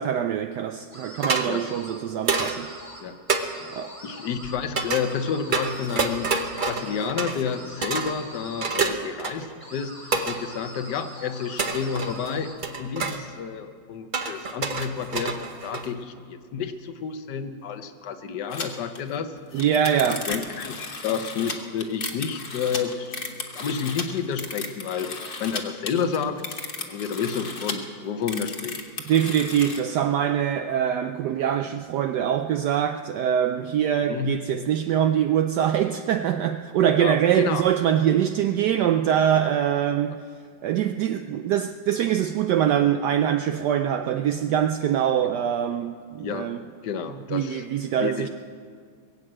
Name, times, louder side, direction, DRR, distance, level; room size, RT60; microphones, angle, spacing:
voice 1, 0.0-2.7 3.7-3.9 19.5-20.3 29.1-40.2 40.6-46.6 47.3-48.3, right 9 dB, 75° right, 1.0 m, -23 dB
sound 1, 0.9-2.0 2.3-3.0 3.3-7.1 7.4-8.8 9.6-12.6, equal, 15° right, 2.0 m, -43 dB
sound 2, 1.2-1.5 2.3-2.6 3.3-3.4 4.8-5.0 5.5-7.5 7.8-8.1 8.6-9.5 10.1-10.4 11.6-12.3 12.6-13.2 14.1-16.0, right 4 dB, 45° right, 0.6 m, -27 dB
voice 2, 4.0-12.5 12.8-19.3 20.3-23.2 23.5-26.6 26.9-28.8 34.1-34.4 37.0-37.6 46.2-46.5 46.8-47.6 48.0-48.3, left 6 dB, 65° left, 1.4 m, -30 dB
sound 3, 18.5-18.7 18.9-19.0 19.4-25.6 25.9-27.8 28.2-29.8, left 4 dB, 35° left, 1.1 m, -34 dB
21.5 x 8.2 x 7.5 m
omnidirectional pair, 2.1 m